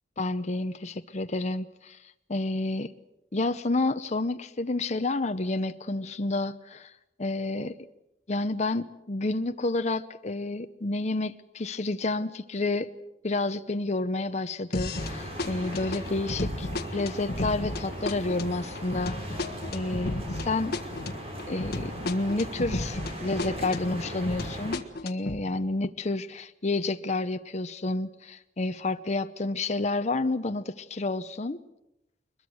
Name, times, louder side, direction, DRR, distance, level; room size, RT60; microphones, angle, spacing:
voice 1, 0.2-2.0 2.3-2.9 3.3-6.9 7.2-7.7 8.3-12.9 13.2-19.1 19.7-20.7 21.5-31.6, left 2 dB, 40° left, 8 dB, 0.8 m, -30 dB
sound 1, 14.7-15.1 15.4-23.1 23.4-25.4, left 2 dB, 60° left, 1.5 m, -33 dB
sound 2, 14.9-24.8, equal, 35° right, 6.8 m, -38 dB
22.5 x 21.5 x 7.9 m, 0.86 s
head